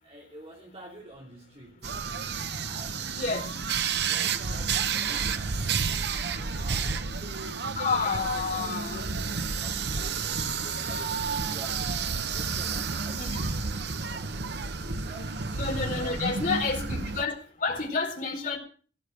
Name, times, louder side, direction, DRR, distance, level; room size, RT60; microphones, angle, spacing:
voice 1, 0.0-2.0 2.6-9.3 9.6-15.4 16.0-16.9, right 1 dB, 35° right, -2 dB, 3.1 m, -49 dB
sound 1, 1.8-17.2, right 5 dB, 60° right, 1.0 m, -31 dB
voice 2, 7.8-9.0 13.2-13.4 15.5-17.3 17.6-18.6, left 4 dB, 45° left, 0 dB, 4.3 m, -29 dB
16.5 x 6.4 x 9.1 m, 0.42 s
head